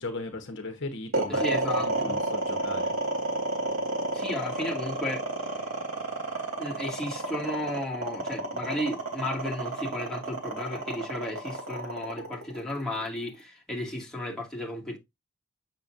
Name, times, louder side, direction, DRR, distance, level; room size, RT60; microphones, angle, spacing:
voice 1, 0.0-1.4 1.8-2.9, left 2 dB, 55° left, 1.1 m, -37 dB
sound 1, 1.1-13.4, right 2 dB, 70° right, 3.4 m, -30 dB
voice 2, 1.3-2.2 4.1-5.2 5.5-5.6 6.6-15.0, left 1 dB, ahead, 2.2 m, -34 dB
7.6 x 6.3 x 2.6 m
head